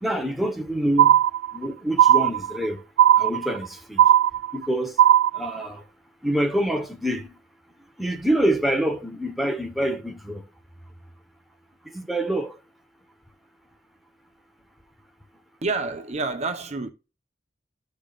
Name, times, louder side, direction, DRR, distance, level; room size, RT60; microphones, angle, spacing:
voice 1, 0.0-1.2 1.5-2.8 3.2-4.0 4.5-5.0 5.3-5.8 6.2-7.3 8.0-10.4 11.8-12.6, right 1 dB, ahead, 1.2 m, -26 dB
sound 1, 1.0-1.7 2.0-2.7 3.0-3.7 4.0-4.7 5.0-5.7, right 11 dB, 85° right, 0.3 m, -17 dB
voice 2, 15.6-16.9, right 3 dB, 40° right, 0.9 m, -28 dB
14.5 x 5.1 x 2.5 m
head